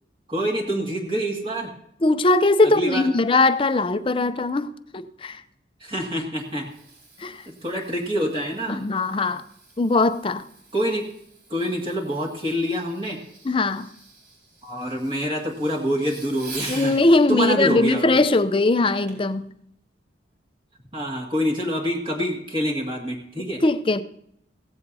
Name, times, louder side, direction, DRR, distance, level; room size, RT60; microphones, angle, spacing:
voice 1, 0.3-1.7 2.6-3.1 5.8-6.7 7.6-8.9 10.7-11.1 11.5-13.2 14.6-16.9 17.3-18.1 20.9-23.6, equal, 30° right, 2.0 m, -26 dB
voice 2, 2.0-5.4 7.2-7.4 8.7-9.4 9.8-10.4 13.4-13.9 16.7-19.5 23.6-24.0, left 2 dB, 30° left, 0.5 m, -20 dB
Fireworks, 6.1-17.1 19.1-19.4 19.9-20.0, right 3 dB, 75° right, 4.2 m, -44 dB
16.5 x 14.5 x 2.7 m
head